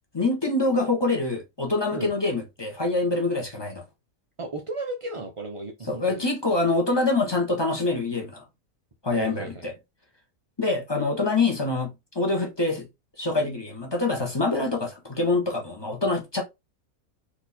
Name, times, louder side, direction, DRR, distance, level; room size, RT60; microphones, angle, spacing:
voice 1, 0.1-3.8 5.9-8.4 9.0-9.7 10.6-11.9 12.1-12.9 13.2-16.4, left 2 dB, 20° left, 1.2 m, -25 dB
voice 2, 4.4-6.3 9.1-9.6, right 2 dB, 40° right, 0.5 m, -35 dB
4.5 x 2.9 x 4.2 m
omnidirectional pair, 1.5 m